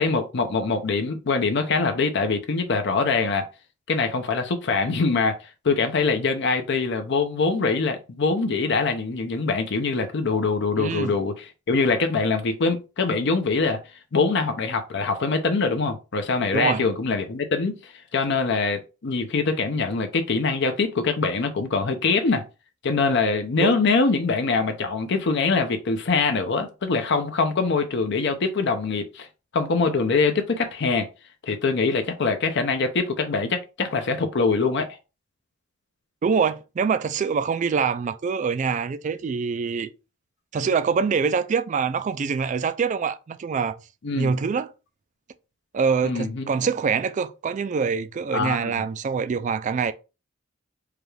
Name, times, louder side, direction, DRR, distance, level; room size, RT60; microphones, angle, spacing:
voice 1, 0.0-3.5 3.9-22.4 22.8-29.3 29.5-31.1 31.4-35.0 44.0-44.3 46.0-46.5 48.3-48.7, left 4 dB, 60° left, 0.6 m, -23 dB
voice 2, 10.8-11.1 16.5-16.8 23.6-23.8 36.2-39.9 40.5-43.8 44.2-44.7 45.7-49.9, right 5 dB, 35° right, 0.3 m, -25 dB
4.8 x 2.3 x 3.2 m
head